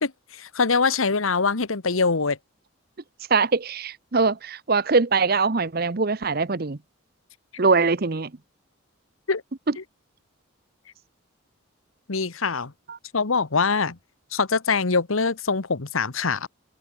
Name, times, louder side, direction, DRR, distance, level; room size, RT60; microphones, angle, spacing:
voice 1, 0.0-2.4 9.3-9.4 9.8-9.9 12.1-12.7 13.1-14.0 14.3-16.5, left 4 dB, 80° left, 1.2 m, -23 dB
voice 2, 3.3-6.8 7.6-8.3 12.9-13.0, right 4 dB, 45° right, 0.8 m, -22 dB
open air
head